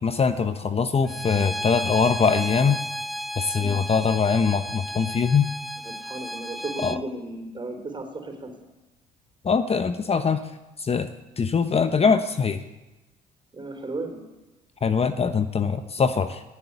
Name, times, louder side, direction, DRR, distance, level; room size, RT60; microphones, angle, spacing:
voice 1, 0.0-2.8 3.4-5.5 6.8-7.0 9.4-10.4 10.8-11.1 11.4-12.6 14.8-16.4, left 5 dB, 35° left, 10 dB, 1.0 m, -22 dB
Bowed string instrument, 1.1-7.0, equal, ahead, 0.7 m, -33 dB
voice 2, 5.8-8.5 13.5-14.2, right 2 dB, 25° right, 5 dB, 4.2 m, -35 dB
17.0 x 8.1 x 9.8 m, 1.1 s
hypercardioid pair, 65°, 19 cm